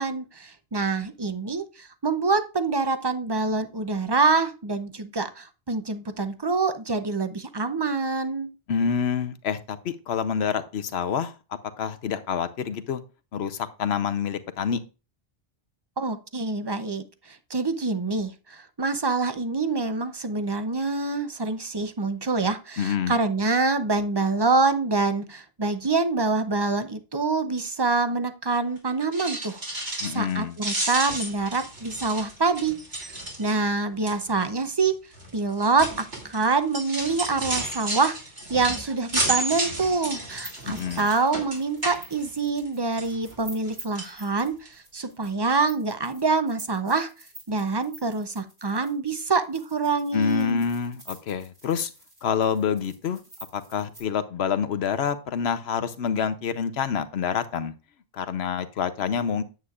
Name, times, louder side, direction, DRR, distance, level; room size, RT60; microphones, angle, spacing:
voice 1, 0.0-8.5 16.0-29.9 30.1-34.9 35.3-38.1 38.5-47.1 47.5-50.6, right 3 dB, 25° right, 10 dB, 0.7 m, -26 dB
voice 2, 8.7-11.3 11.8-13.0 13.3-14.8 22.8-23.1 30.0-30.6 40.7-41.1 50.1-51.9 52.2-53.2 53.5-57.7 58.1-59.4, left 7 dB, 80° left, 12 dB, 1.0 m, -27 dB
sound 1, 29.0-30.3 30.6-33.7 34.1-34.4 35.1-42.7 43.0-43.7 43.9-44.1 44.7-44.8 45.0-45.1, right 2 dB, 70° right, 3.1 m, -32 dB
sound 2, 40.3-54.0, right 2 dB, 55° right, 3.6 m, -48 dB
9.4 x 8.1 x 2.4 m, 0.31 s
omnidirectional pair, 1.1 m